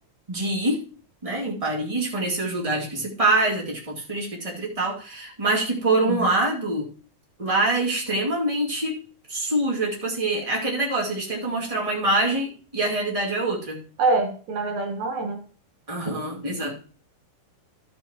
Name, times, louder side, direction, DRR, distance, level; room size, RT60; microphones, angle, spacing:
voice 1, 0.3-0.8 1.2-6.9 7.4-9.0 9.3-13.8 15.9-16.7, right 2 dB, 15° right, -3 dB, 1.6 m, -25 dB
voice 2, 14.0-15.4, right 3 dB, 65° right, 2 dB, 2.1 m, -25 dB
13.0 x 7.4 x 2.9 m, 0.38 s
omnidirectional pair, 4.2 m